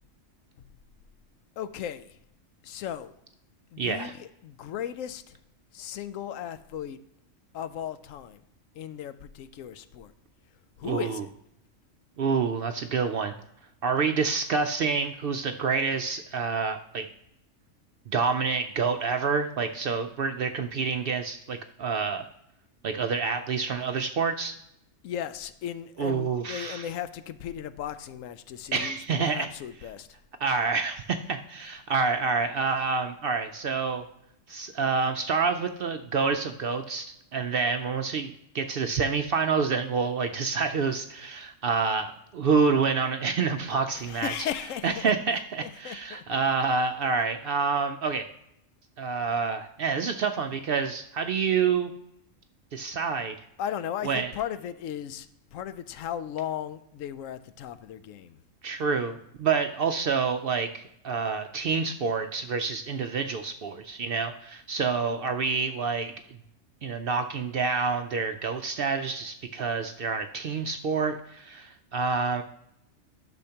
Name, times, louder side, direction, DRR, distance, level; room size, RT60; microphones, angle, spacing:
voice 1, 1.6-2.2 2.6-3.1 3.7-5.4 5.7-7.0 7.5-8.4 8.7-10.1 10.8-11.3 25.0-30.1 44.0-45.1 45.6-46.2 53.6-55.3 55.5-58.4, left 9 dB, 80° left, 13 dB, 0.9 m, -36 dB
voice 2, 3.8-4.1 10.8-11.2 12.2-13.3 13.8-17.1 18.1-22.3 22.8-24.5 26.0-26.9 28.7-29.5 30.4-34.0 34.5-37.0 37.3-44.3 44.8-48.2 49.0-51.9 52.7-53.3 54.0-54.3 58.6-66.1 66.8-72.4, right 5 dB, 65° right, 7 dB, 0.6 m, -28 dB
12.0 x 6.3 x 2.8 m, 0.78 s
omnidirectional pair, 1.4 m